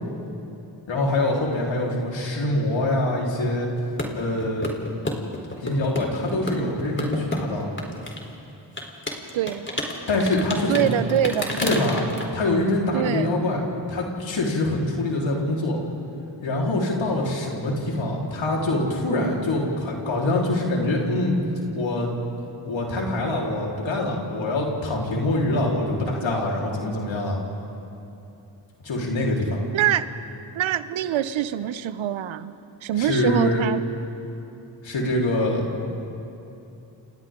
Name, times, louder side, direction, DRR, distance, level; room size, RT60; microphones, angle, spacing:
voice 1, 0.9-3.7 4.1-4.7 5.6-7.7 10.1-11.0 11.6-12.1 12.3-13.6 13.9-15.8 16.4-21.3 21.7-22.1 22.6-27.4 28.8-29.6 32.9-33.6 34.8-35.7, left 1 dB, 75° left, -2 dB, 4.3 m, -24 dB
sound 1, 3.8-8.2 8.8-12.2, left 1 dB, 25° left, 4.0 m, -30 dB
voice 2, 9.3-9.7 10.7-11.6 12.9-13.4 29.7-30.1 30.5-32.5 32.8-33.8, right 11 dB, 80° right, 14 dB, 0.8 m, -24 dB
30.0 x 28.0 x 3.8 m, 2.8 s
supercardioid pair, 45°, 46 cm